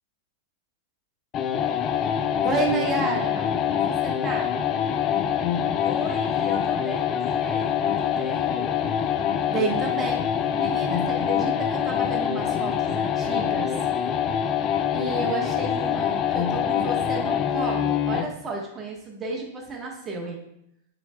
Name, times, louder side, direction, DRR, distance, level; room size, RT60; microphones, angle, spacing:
sound 1, 1.3-18.4, left 8 dB, 35° left, 0.3 m, -25 dB
voice 1, 2.4-4.5 9.5-10.3 10.6-13.7 14.9-20.4, right 3 dB, 25° right, 0 dB, 1.1 m, -31 dB
voice 2, 5.8-8.8 15.9-16.3, left 3 dB, 15° left, 0 dB, 1.0 m, -38 dB
6.8 x 3.4 x 2.2 m, 0.77 s
hypercardioid pair, 110°, 0 cm